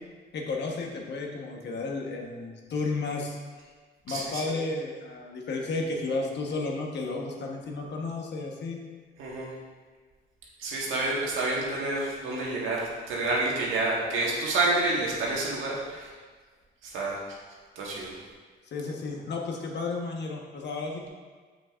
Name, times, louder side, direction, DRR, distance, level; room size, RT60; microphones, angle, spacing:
voice 1, 0.3-3.4 4.0-8.8 18.7-21.1, left 3 dB, 60° left, 0 dB, 1.1 m, -32 dB
voice 2, 4.1-4.5 9.2-9.5 10.6-16.1 16.8-17.2 17.7-18.2, right 2 dB, 85° right, -4 dB, 1.6 m, -29 dB
7.2 x 6.1 x 2.5 m, 1.5 s
cardioid pair, 90°, 20 cm